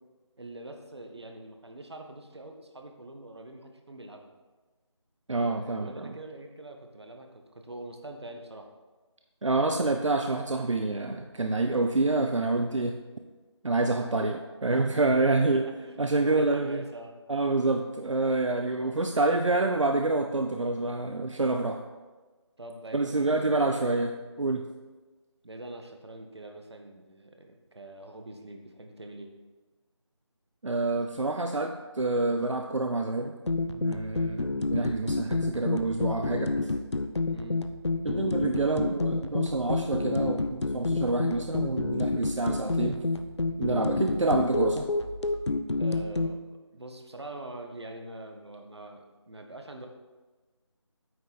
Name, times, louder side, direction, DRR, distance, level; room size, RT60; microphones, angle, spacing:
voice 1, 0.4-4.3 5.3-8.7 14.9-15.0 15.6-17.1 22.6-23.4 25.4-29.3 37.3-37.6 45.8-49.9, right 1 dB, 60° right, 4 dB, 1.4 m, -44 dB
voice 2, 5.3-6.1 9.4-13.0 13.6-15.6 16.0-16.8 17.3-21.8 22.9-24.1 24.4-24.6 30.6-33.3 33.7-36.5 38.0-43.0 43.6-44.9, right 2 dB, 85° right, 5 dB, 0.7 m, -27 dB
sound 1, 33.5-46.3, left 3 dB, 65° left, 0.7 m, -29 dB
9.1 x 6.5 x 4.2 m, 1.3 s
figure-of-eight pair, 175°, 15 cm